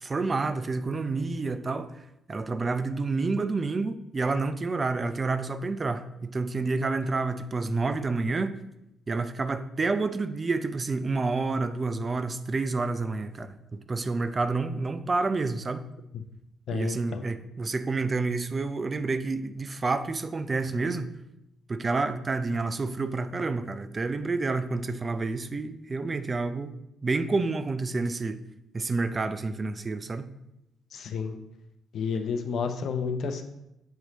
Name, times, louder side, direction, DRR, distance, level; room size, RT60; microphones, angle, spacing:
voice 1, 0.0-2.0 2.3-8.6 9.1-15.8 16.7-21.1 21.7-26.7 27.0-28.4 28.7-30.3, right 3 dB, 30° right, 10 dB, 0.5 m, -29 dB
voice 2, 16.7-17.2 30.9-31.4 31.9-33.4, left 5 dB, 70° left, 6 dB, 0.6 m, -31 dB
7.5 x 3.2 x 4.0 m, 0.85 s
cardioid pair, 90°, 0 cm